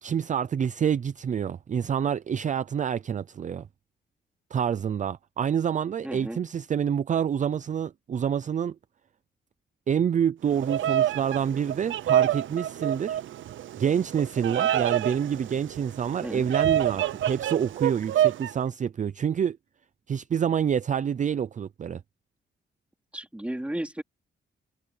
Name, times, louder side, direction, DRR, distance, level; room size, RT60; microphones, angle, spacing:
voice 1, 0.0-3.7 4.5-8.8 9.9-13.2 13.8-19.6 20.1-22.0, right 8 dB, 40° right, 0.5 m, -27 dB
voice 2, 6.0-6.4 16.2-16.5 23.1-24.0, right 1 dB, 5° right, 3.3 m, -33 dB
Bird vocalization bird call bird song, 10.5-18.5, right 11 dB, 85° right, 0.6 m, -27 dB
wide cardioid pair, 145°, 19 cm